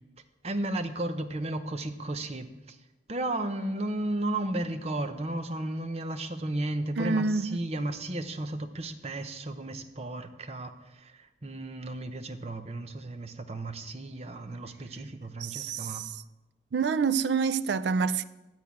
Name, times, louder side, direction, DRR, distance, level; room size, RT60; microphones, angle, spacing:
voice 1, 0.4-2.8 3.1-16.0, right 1 dB, 35° right, 0.7 m, -34 dB
voice 2, 7.0-7.6 15.4-16.2 16.7-18.2, right 5 dB, 70° right, 0.4 m, -27 dB
12.0 x 4.5 x 8.3 m
head